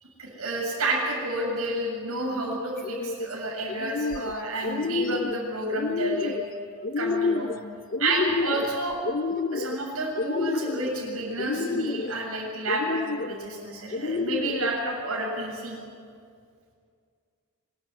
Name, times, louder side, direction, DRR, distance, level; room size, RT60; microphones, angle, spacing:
voice 1, 0.2-6.3 7.0-7.5 8.0-9.0 9.5-15.8, right 2 dB, 75° right, -3 dB, 7.3 m, -30 dB
sound 1, 2.8-3.3 3.7-4.3 4.6-5.4 5.7-6.4 6.8-7.6 7.9-8.7 9.0-9.8 10.2-10.9 11.4-12.1 12.7-13.3 13.9-14.7, left 4 dB, 40° left, 0.5 m, -29 dB
25.0 x 13.5 x 9.9 m, 2.2 s
head